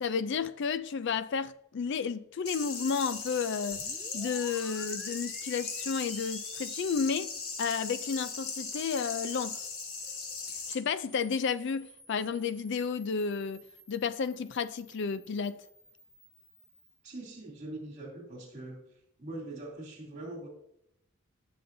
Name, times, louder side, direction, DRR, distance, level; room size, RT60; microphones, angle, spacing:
voice 1, 0.0-3.8 4.1-7.3 7.6-9.7 10.7-13.6 13.9-15.6, left 5 dB, 55° left, 0.4 m, -32 dB
sound 1, 2.5-10.7, left 5 dB, 75° left, 1.8 m, -38 dB
sound 2, 3.7-17.0, equal, 5° left, 0.8 m, -54 dB
voice 2, 17.0-18.8 19.2-20.5, right 2 dB, 35° right, 3.0 m, -42 dB
17.0 x 7.0 x 2.7 m
head